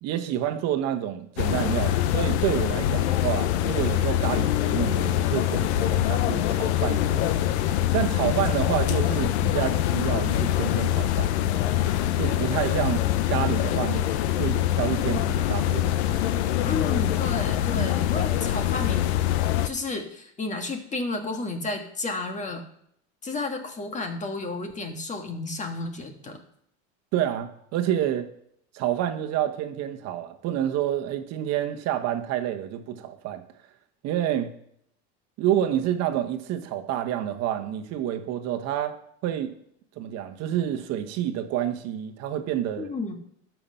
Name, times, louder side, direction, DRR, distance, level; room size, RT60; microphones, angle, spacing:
voice 1, 0.0-7.4 7.9-11.3 12.2-14.1 14.4-16.5 17.8-17.9 27.1-28.3 28.7-33.4 34.0-34.5 35.4-39.5 40.0-42.9, right 11 dB, 50° right, 1.2 m, -28 dB
sound 1, 1.4-19.7, left 12 dB, 80° left, 0.9 m, -24 dB
voice 2, 16.6-19.1 19.6-22.6 23.2-26.4 42.8-43.2, left 3 dB, 20° left, 1.6 m, -32 dB
13.0 x 5.8 x 5.6 m
supercardioid pair, 125°, 33 cm